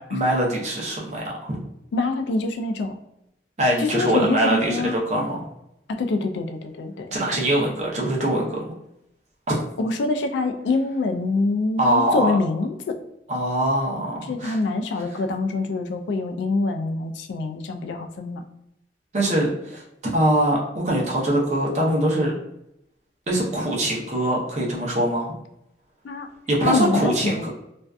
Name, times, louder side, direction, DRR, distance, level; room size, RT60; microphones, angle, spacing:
voice 1, 0.1-1.6 3.6-5.5 7.1-8.6 9.5-9.6 11.8-12.3 13.3-14.6 19.1-19.8 20.1-20.6 20.8-22.3 23.3-25.3 26.5-27.5, right 1 dB, 40° right, -2 dB, 0.6 m, -23 dB
voice 2, 1.9-3.0 3.8-5.0 5.9-7.1 9.8-12.9 14.2-18.4 26.0-26.3 26.7-27.5, left 3 dB, 75° left, 5 dB, 0.3 m, -25 dB
2.5 x 2.2 x 2.3 m, 0.81 s
head